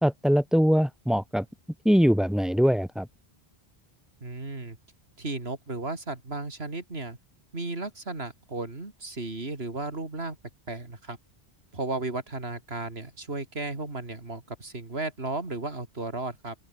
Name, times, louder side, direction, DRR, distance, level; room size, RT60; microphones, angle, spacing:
voice 1, 0.0-1.5 1.8-3.1, equal, ahead, 0.5 m, -22 dB
voice 2, 4.2-4.8 5.2-7.2 7.5-10.4 10.7-11.2 11.7-16.6, right 2 dB, 80° right, 3.6 m, -34 dB
open air
omnidirectional pair, 1.0 m